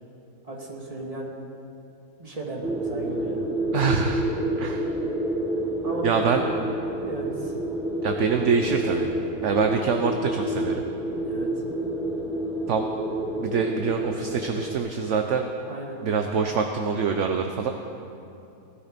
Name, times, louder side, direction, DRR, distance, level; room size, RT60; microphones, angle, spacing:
voice 1, 0.4-1.3 2.2-3.5 5.8-6.4 7.1-7.6 11.2-11.5 15.7-16.0, right 2 dB, 20° right, -2 dB, 2.1 m, -35 dB
sound 1, 2.6-14.8, right 1 dB, ahead, 1.2 m, -29 dB
voice 2, 3.7-4.3 4.6-4.9 6.0-6.4 8.0-9.1 9.4-10.9 12.7-12.9 13.4-15.5 16.0-17.7, right 6 dB, 55° right, 5 dB, 0.9 m, -25 dB
18.0 x 12.5 x 5.2 m, 2.7 s
omnidirectional pair, 1.7 m